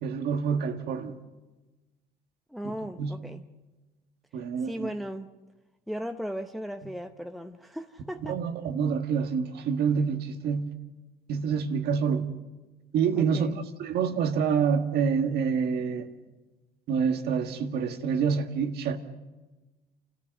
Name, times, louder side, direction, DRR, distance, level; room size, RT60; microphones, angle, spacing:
voice 1, 0.0-1.1 2.6-3.2 4.3-4.9 8.2-10.7 11.3-12.3 12.9-16.1 16.9-19.0, right 6 dB, 70° right, 1.7 m, -27 dB
voice 2, 2.5-3.4 4.6-5.3 5.9-8.4 13.2-13.6, equal, ahead, 0.8 m, -36 dB
28.5 x 14.0 x 6.6 m
cardioid pair, 110°, 17 cm